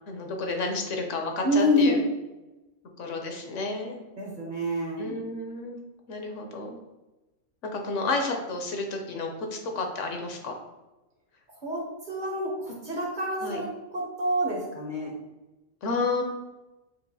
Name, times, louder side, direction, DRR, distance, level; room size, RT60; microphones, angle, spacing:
voice 1, 0.1-2.0 3.0-4.0 5.0-6.8 7.6-10.6 13.4-13.6 15.8-16.2, left 3 dB, 70° left, 3 dB, 1.0 m, -31 dB
voice 2, 1.4-2.0 4.2-5.1 11.6-15.2, left 1 dB, 45° right, -2 dB, 0.8 m, -27 dB
6.7 x 2.4 x 2.7 m, 1.1 s
omnidirectional pair, 1.4 m